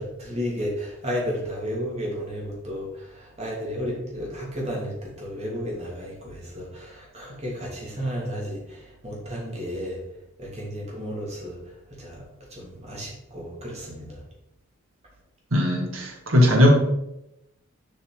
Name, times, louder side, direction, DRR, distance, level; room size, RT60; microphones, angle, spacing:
voice 1, 0.0-10.0 10.4-11.6 12.0-12.2 12.5-14.2, equal, 30° right, -3 dB, 2.8 m, -33 dB
voice 2, 15.5-16.7, left 1 dB, 85° right, 1 dB, 1.9 m, -18 dB
7.2 x 5.1 x 5.1 m, 0.85 s
head